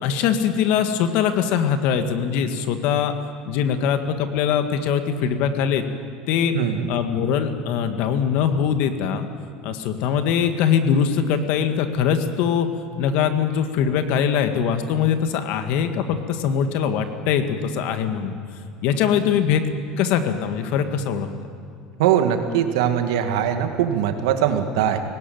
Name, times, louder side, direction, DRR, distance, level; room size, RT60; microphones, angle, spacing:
voice 1, 0.0-3.1 3.5-5.8 6.3-6.5 6.9-9.3 9.6-12.7 13.0-18.4 18.8-19.6 20.0-21.3, left 8 dB, 70° left, 8 dB, 1.8 m, -22 dB
voice 2, 6.5-6.9 22.0-25.0, right 9 dB, 80° right, 6 dB, 1.9 m, -21 dB
18.5 x 17.5 x 9.4 m, 2.2 s
supercardioid pair, 100°, 3 cm